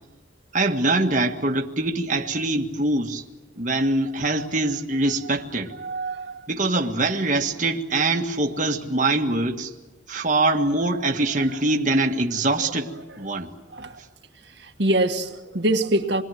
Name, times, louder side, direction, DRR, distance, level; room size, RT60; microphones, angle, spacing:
voice 1, 0.5-3.2 3.6-5.7 6.5-9.7 10.1-12.9 13.2-13.5, right 2 dB, 40° right, 2 dB, 1.7 m, -23 dB
voice 2, 5.8-6.5 10.9-11.0 13.7-14.0 14.4-16.2, right 1 dB, 60° right, 4 dB, 1.6 m, -25 dB
28.0 x 21.5 x 9.3 m, 1.1 s
head